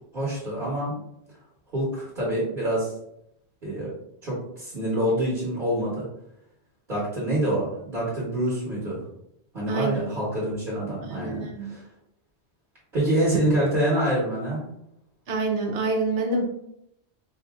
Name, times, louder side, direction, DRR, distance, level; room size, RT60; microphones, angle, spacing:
voice 1, 0.1-1.0 1.7-2.9 3.6-3.9 4.2-6.1 6.9-9.0 9.5-11.8 12.9-14.6, right 1 dB, 45° right, -7 dB, 1.3 m, -26 dB
voice 2, 9.7-10.1 11.0-11.8 15.3-16.4, right 3 dB, 80° right, 1 dB, 1.1 m, -27 dB
4.7 x 2.6 x 2.3 m, 0.76 s
omnidirectional pair, 1.2 m